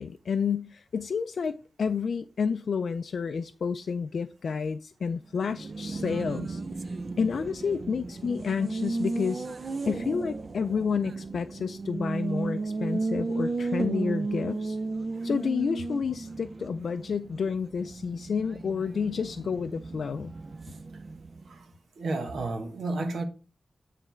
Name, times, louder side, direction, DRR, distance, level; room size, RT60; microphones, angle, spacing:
voice 1, 0.0-6.6 7.2-9.5 9.9-14.8 15.2-20.3, left 6 dB, 70° left, 0.3 m, -30 dB
Race car auto racing, 5.3-21.6, right 3 dB, 40° right, 0.5 m, -34 dB
voice 2, 22.0-23.2, right 2 dB, 90° right, 1.1 m, -32 dB
9.3 x 3.3 x 4.4 m
wide cardioid pair, 135°, 0 cm